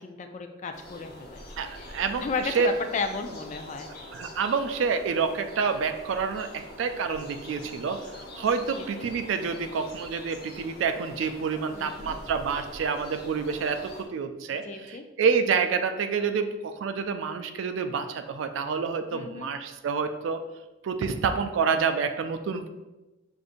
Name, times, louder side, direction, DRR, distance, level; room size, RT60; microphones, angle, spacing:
voice 1, 0.0-1.4 1.8-1.9 2.2-4.0 8.8-9.1 11.7-12.1 14.6-15.0 19.1-19.5, left 4 dB, 35° left, 6 dB, 0.3 m, -34 dB
sound 1, 0.7-14.0, left 1 dB, 55° left, 0.8 m, -44 dB
voice 2, 1.6-2.7 4.1-20.4 20.8-22.7, right 5 dB, 70° right, 8 dB, 0.3 m, -28 dB
6.2 x 2.6 x 2.5 m, 1.1 s
head